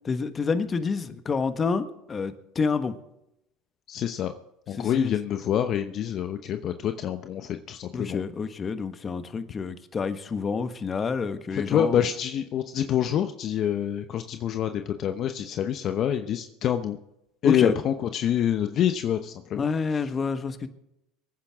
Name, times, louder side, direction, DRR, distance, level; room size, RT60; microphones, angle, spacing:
voice 1, 0.0-2.9 4.8-5.1 7.9-12.0 17.4-17.7 19.6-20.7, left 5 dB, 30° left, 9 dB, 1.4 m, -28 dB
voice 2, 3.9-4.3 4.7-8.2 11.5-17.0 17.4-19.7, left 10 dB, 50° left, 8 dB, 0.9 m, -26 dB
24.0 x 9.9 x 3.7 m, 0.83 s
hypercardioid pair, 85°, 0 cm